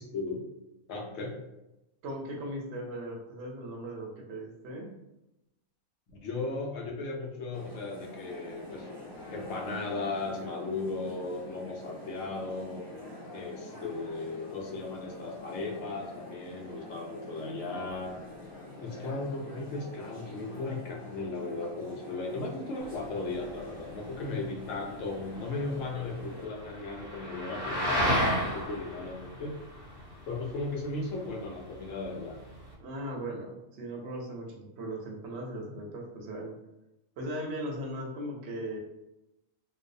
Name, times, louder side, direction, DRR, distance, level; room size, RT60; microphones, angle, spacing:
voice 1, 0.1-0.5 0.9-1.4 6.1-8.9 9.3-12.9 13.3-18.2 18.8-29.6 30.3-32.4, left 3 dB, 70° left, 0 dB, 0.9 m, -36 dB
voice 2, 2.0-4.9 32.8-36.6 37.2-38.8, right 1 dB, 65° right, 0 dB, 0.7 m, -38 dB
sound 1, 7.5-26.5, left 1 dB, 25° left, 0.7 m, -46 dB
sound 2, 22.8-32.7, equal, 40° right, 0.3 m, -35 dB
2.5 x 2.0 x 2.5 m, 0.92 s
omnidirectional pair, 1.5 m